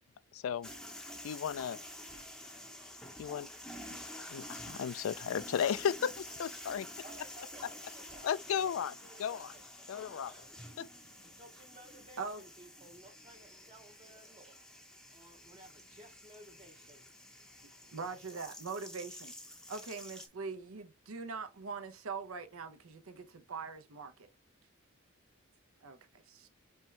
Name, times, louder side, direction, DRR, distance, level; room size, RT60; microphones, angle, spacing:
voice 1, 0.3-0.7 1.2-1.8 3.2-3.5 4.3-6.9 8.2-8.9 9.2-9.5 9.9-10.3 10.8-10.9, left 8 dB, 75° left, 0.3 m, -34 dB
sound 1, 0.6-20.3, left 1 dB, 5° left, 0.6 m, -49 dB
voice 2, 7.0-10.6 11.2-17.0, right 1 dB, 30° right, 0.7 m, -57 dB
voice 3, 17.9-19.3 19.7-24.3 25.8-26.5, right 4 dB, 80° right, 0.7 m, -42 dB
4.4 x 3.5 x 3.2 m
head